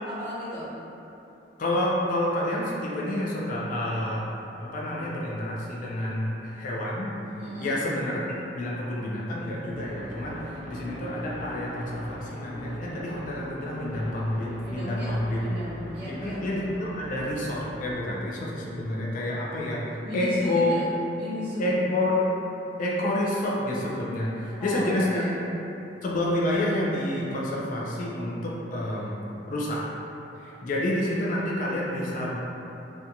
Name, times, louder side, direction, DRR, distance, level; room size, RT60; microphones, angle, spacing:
voice 1, 0.0-0.7 7.4-7.7 14.6-16.4 20.0-20.9 21.1-21.7 24.6-25.4, left 1 dB, 5° right, -18 dB, 1.0 m, -35 dB
voice 2, 1.6-4.3 4.6-7.1 7.6-8.2 8.6-15.4 16.1-19.8 20.1-20.7 21.6-22.2 22.8-25.3 26.0-29.2 29.5-29.8 30.4-32.4, left 1 dB, 45° left, -5 dB, 0.4 m, -28 dB
sound 1, 9.7-17.9, equal, 40° right, 0.4 m, -42 dB
2.5 x 2.2 x 2.8 m, 2.9 s
head